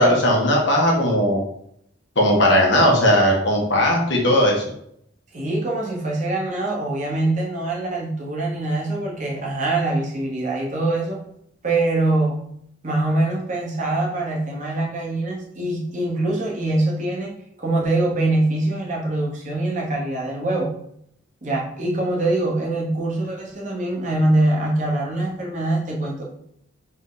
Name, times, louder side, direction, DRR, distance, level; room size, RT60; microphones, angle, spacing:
voice 1, 0.0-1.4 2.2-4.6, equal, 65° left, -1 dB, 1.2 m, -17 dB
voice 2, 5.3-11.2 11.6-12.4 12.8-17.3 17.6-20.7 21.4-26.2, right 2 dB, 40° right, -2 dB, 1.0 m, -23 dB
4.3 x 2.8 x 3.8 m, 0.71 s
head